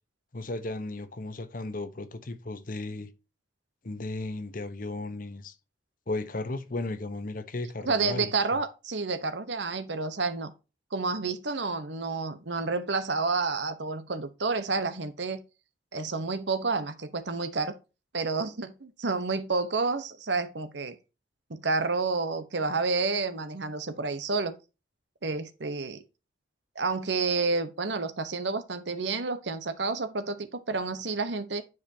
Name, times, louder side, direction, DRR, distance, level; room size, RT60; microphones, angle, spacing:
voice 1, 0.3-3.1 3.8-5.5 6.1-8.3, left 2 dB, 45° left, 0.9 m, -35 dB
voice 2, 7.9-10.5 10.9-15.4 15.9-17.8 18.1-20.9 21.5-24.5 25.2-26.0 26.7-31.6, right 4 dB, 70° right, 1.0 m, -30 dB
9.5 x 5.2 x 2.7 m
head